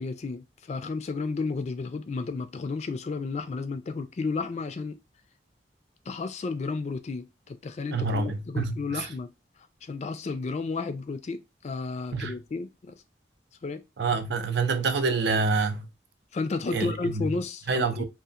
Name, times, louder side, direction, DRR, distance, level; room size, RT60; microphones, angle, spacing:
voice 1, 0.0-4.9 6.1-9.3 9.8-13.0 13.6-13.8 16.3-18.0, left 4 dB, 40° left, 0.3 m, -32 dB
voice 2, 7.9-9.1 12.1-12.3 14.0-15.9 16.7-17.3 17.7-18.0, right 4 dB, 70° right, 0.5 m, -27 dB
2.8 x 2.4 x 2.4 m
head